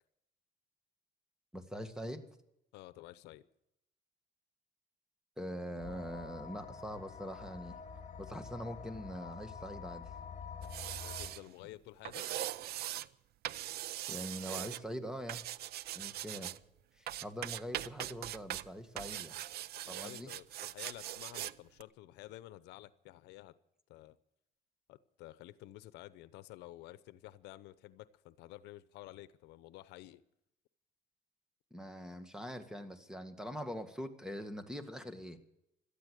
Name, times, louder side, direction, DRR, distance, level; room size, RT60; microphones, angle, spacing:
voice 1, 1.5-2.3 5.4-7.8 8.2-10.0 14.1-15.4 15.9-16.5 17.0-19.4 19.9-20.3 31.7-35.4, equal, 5° right, 2.0 m, -43 dB
voice 2, 2.7-3.5 11.0-12.3 19.8-23.5 23.9-24.2 24.9-30.2, left 16 dB, 85° left, 0.8 m, -51 dB
sound 1, 5.8-11.3, left 6 dB, 45° left, 3.3 m, -47 dB
sound 2, 10.6-11.4 12.0-13.1 13.4-14.8 15.3-16.6 17.1-18.7 19.0-21.5 21.8-21.9, right 13 dB, 70° right, 0.6 m, -41 dB
17.5 x 13.0 x 6.4 m
cardioid pair, 110°, 17 cm